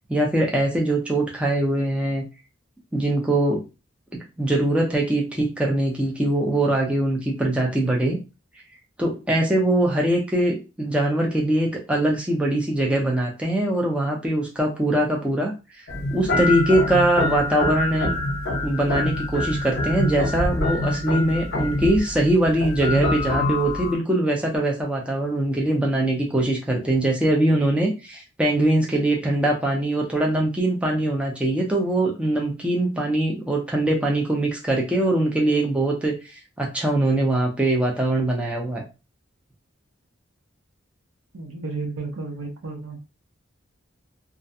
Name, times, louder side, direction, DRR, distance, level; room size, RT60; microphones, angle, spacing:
voice 1, 0.1-2.2 2.9-3.6 4.4-8.2 9.0-15.8 16.1-18.1 18.6-38.8, right 1 dB, 5° right, -2 dB, 0.4 m, -22 dB
sound 1, 15.9-24.0, left 1 dB, 55° left, 0.7 m, -26 dB
voice 2, 20.9-21.4 41.3-43.0, right 3 dB, 85° right, 3 dB, 0.6 m, -32 dB
2.4 x 2.1 x 2.6 m, 0.29 s
head